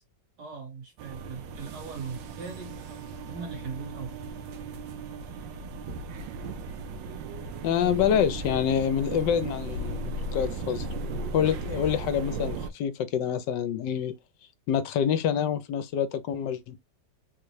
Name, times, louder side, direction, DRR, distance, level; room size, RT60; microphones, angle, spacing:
voice 1, 0.4-4.1, right 5 dB, 65° right, 2.2 m, -40 dB
sound 1, 1.0-12.7, right 3 dB, 80° right, 1.3 m, -36 dB
voice 2, 7.6-10.9 11.3-14.2 14.7-16.8, left 8 dB, 75° left, 1.2 m, -27 dB
4.0 x 2.2 x 3.1 m
omnidirectional pair, 2.0 m